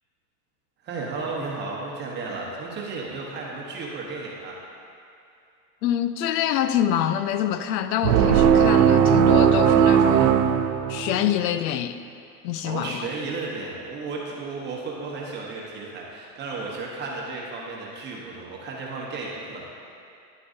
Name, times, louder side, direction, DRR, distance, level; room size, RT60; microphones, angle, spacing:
voice 1, 0.8-4.5 12.6-19.6, right 3 dB, 20° right, -3 dB, 1.0 m, -33 dB
voice 2, 5.8-10.4 10.9-12.0 12.4-13.0, left 10 dB, 90° left, 11 dB, 0.6 m, -26 dB
sound 1, 8.0-11.4, right 8 dB, 85° right, 0.7 m, -18 dB
10.0 x 8.6 x 2.7 m, 2.5 s
supercardioid pair, 160°, 50 cm